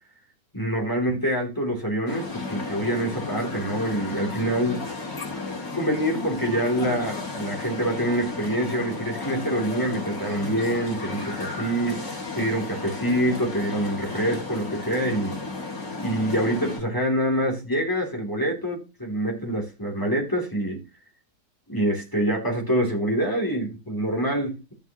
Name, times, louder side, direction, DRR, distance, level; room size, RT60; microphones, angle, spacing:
voice 1, 0.5-4.8 5.8-15.4 16.0-20.8 21.7-24.7, right 1 dB, 10° left, -1 dB, 3.0 m, -26 dB
sound 1, 2.1-16.8, left 3 dB, 75° left, 4.0 m, -33 dB
13.5 x 7.2 x 3.0 m, 0.28 s
omnidirectional pair, 1.9 m